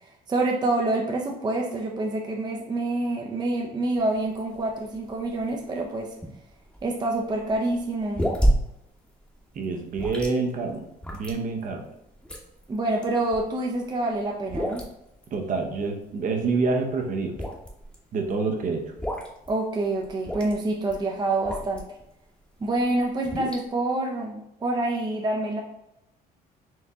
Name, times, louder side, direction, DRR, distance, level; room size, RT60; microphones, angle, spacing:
voice 1, 0.3-6.1 6.8-8.3 12.7-14.8 19.5-21.9 22.6-25.6, right 2 dB, 25° right, 0 dB, 0.6 m, -27 dB
sound 1, 3.9-22.1 22.5-23.6, equal, 5° left, 1.0 m, -32 dB
voice 2, 9.5-10.8 11.1-11.8 15.3-17.4 18.1-18.9, right 4 dB, 50° right, 3 dB, 0.8 m, -27 dB
4.6 x 2.7 x 3.5 m, 0.84 s
cardioid pair, 110°, 17 cm